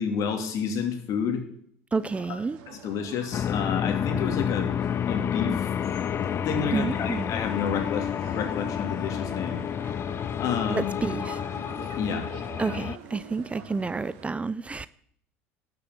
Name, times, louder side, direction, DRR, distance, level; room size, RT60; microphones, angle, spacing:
voice 1, 0.0-1.4 2.7-4.7 5.1-5.6 6.4-9.6 10.4-10.9 11.9-12.3, left 6 dB, 55° left, 2.7 m, -30 dB
voice 2, 1.9-2.6 6.7-7.3 10.7-11.4 12.6-14.9, right 4 dB, 20° right, 0.5 m, -29 dB
sound 1, 2.0-14.3, right 7 dB, 70° right, 2.2 m, -46 dB
sound 2, 3.3-13.0, left 9 dB, 35° left, 0.5 m, -29 dB
12.0 x 6.9 x 8.0 m
hypercardioid pair, 85°, 7 cm